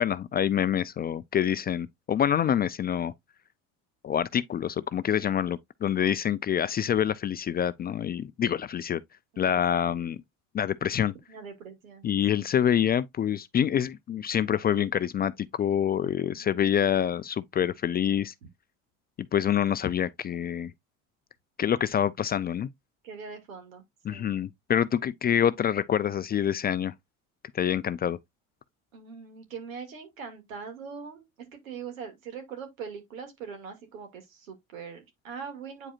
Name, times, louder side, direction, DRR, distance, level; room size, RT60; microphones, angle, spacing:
voice 1, 0.0-3.1 4.0-9.0 9.4-10.2 10.5-11.1 12.0-18.3 19.3-20.7 21.6-22.7 24.0-26.9 27.5-28.2, left 9 dB, 25° left, 0.3 m, -26 dB
voice 2, 11.3-12.5 15.9-16.5 23.0-24.3 28.9-31.3 31.5-35.9, right 6 dB, 85° right, 2.3 m, -42 dB
8.7 x 4.8 x 2.4 m
hypercardioid pair, 75°, 40 cm